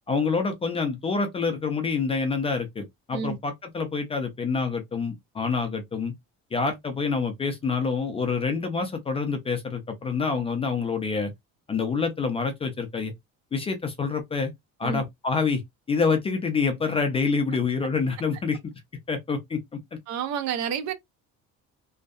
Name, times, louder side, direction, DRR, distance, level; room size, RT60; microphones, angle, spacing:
voice 1, 0.1-6.1 6.5-11.3 11.7-13.1 13.5-14.5 14.8-15.6 15.9-18.7 19.1-19.8, left 4 dB, 20° left, 0.4 m, -27 dB
voice 2, 20.1-20.9, right 8 dB, 60° right, 0.6 m, -29 dB
2.6 x 2.1 x 2.3 m
cardioid pair, 180°, 31 cm